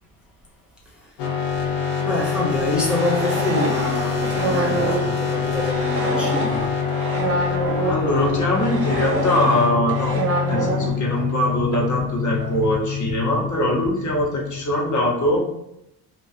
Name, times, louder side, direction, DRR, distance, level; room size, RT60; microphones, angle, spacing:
sound 1, 1.2-14.7, left 6 dB, 85° left, 0.6 m, -25 dB
voice 1, 2.0-6.7, left 2 dB, ahead, -4 dB, 0.8 m, -26 dB
sound 2, 2.4-8.0 8.5-11.5 11.7-11.8 12.4-12.7, right 2 dB, 35° right, 0.8 m, -27 dB
voice 2, 7.5-15.5, equal, 45° left, -1 dB, 1.0 m, -22 dB
2.3 x 2.1 x 2.6 m, 0.83 s
supercardioid pair, 55°, 40 cm